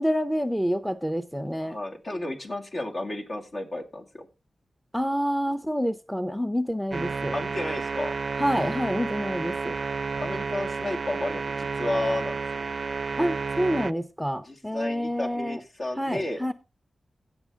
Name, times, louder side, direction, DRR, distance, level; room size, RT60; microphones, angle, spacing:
voice 1, 0.0-1.8 4.9-7.3 8.4-9.8 13.2-15.6 16.0-16.5, equal, ahead, 0.6 m, -27 dB
voice 2, 1.6-4.3 7.3-8.1 10.2-12.6 14.3-16.5, left 1 dB, 55° left, 2.2 m, -32 dB
sound 1, 6.9-13.9, right 4 dB, 60° right, 0.4 m, -31 dB
17.0 x 5.6 x 3.6 m
wide cardioid pair, 70°, 0 cm